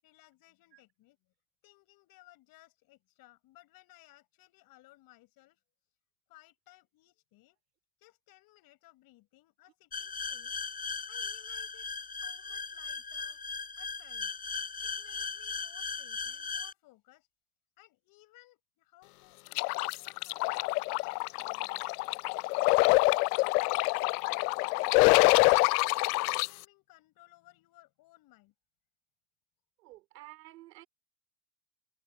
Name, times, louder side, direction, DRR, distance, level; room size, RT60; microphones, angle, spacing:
voice 1, 0.0-1.2 1.6-5.6 6.3-7.6 8.0-10.6 11.1-11.9 12.2-13.4 13.8-14.4 14.8-17.3 17.8-21.9 22.7-25.2 25.7-28.5, left 18 dB, 45° left, 6.8 m, -60 dB
sound 1, 9.9-16.7, left 5 dB, 15° left, 5.0 m, -38 dB
sound 2, 19.5-26.5, left 24 dB, 70° left, 0.5 m, -26 dB
voice 2, 29.8-30.9, right 18 dB, 80° right, 4.4 m, -51 dB
supercardioid pair, 125°, 48 cm